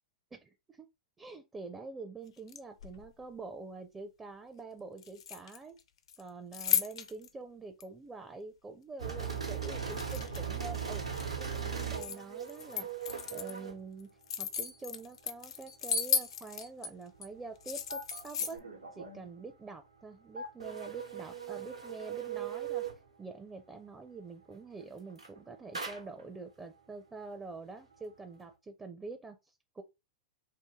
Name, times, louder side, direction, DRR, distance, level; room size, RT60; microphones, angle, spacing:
voice 1, 0.3-0.9 1.2-5.8 6.2-11.1 11.4-12.9 13.3-14.1 14.4-18.6 18.9-22.9 23.2-29.8, right 3 dB, 15° right, 0.5 m, -46 dB
sound 1, 2.4-3.1 5.0-5.8 6.1-7.3 7.8-7.9 9.3-10.6 10.9-12.2 12.5-13.6 14.0-16.9 17.2-17.3 17.6-18.6, left 7 dB, 65° left, 0.5 m, -35 dB
sound 2, 9.0-13.8 17.9-19.3 20.4-23.0 25.1-25.4 25.7-26.2, right 7 dB, 90° right, 1.0 m, -39 dB
2.8 x 2.6 x 3.6 m
figure-of-eight pair, 100°, 3 cm